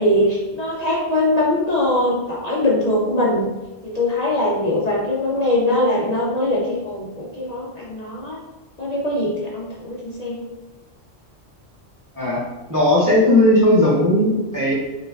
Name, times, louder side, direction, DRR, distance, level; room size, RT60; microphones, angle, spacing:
voice 1, 0.0-3.5 3.8-8.4 8.8-10.4 13.3-13.4, left 1 dB, 45° left, -5 dB, 0.5 m, -21 dB
voice 2, 12.7-14.7, left 1 dB, 20° right, -7 dB, 0.6 m, -16 dB
4.2 x 2.4 x 2.4 m, 1.1 s
omnidirectional pair, 1.3 m